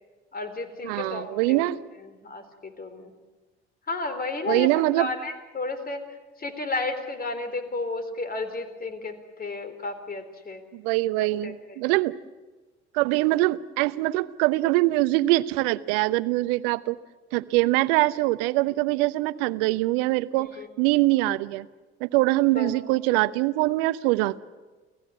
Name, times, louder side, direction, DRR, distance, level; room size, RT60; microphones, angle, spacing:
voice 1, 0.3-1.7 2.1-3.1 3.9-6.0 6.4-10.6 11.2-11.8 20.4-20.7 22.6-22.8, left 3 dB, 25° left, 10 dB, 3.9 m, -33 dB
voice 2, 0.8-1.8 4.5-5.1 10.7-12.2 12.9-17.0 17.3-21.7 22.0-24.4, right 18 dB, 60° right, 18 dB, 0.9 m, -23 dB
29.5 x 17.5 x 9.6 m, 1.3 s
figure-of-eight pair, 60°, 33 cm